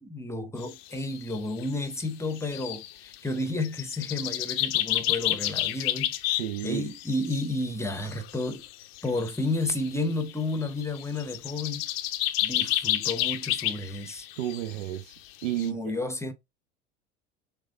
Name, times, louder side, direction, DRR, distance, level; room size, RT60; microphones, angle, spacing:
voice 1, 0.0-8.7 9.0-11.9 12.4-14.3 15.6-16.3, left 2 dB, 10° left, 0.8 m, -32 dB
sound 1, 0.6-1.4 1.6-1.7 2.0-2.1 2.3-3.3 3.6-7.5 7.9-9.9 10.2-14.8 15.1-15.2 15.4-15.7, left 14 dB, 55° left, 0.6 m, -30 dB
voice 2, 6.4-6.9 14.4-15.1 15.4-15.8, right 13 dB, 65° right, 0.7 m, -31 dB
6.1 x 2.3 x 2.6 m
figure-of-eight pair, 70°, 36 cm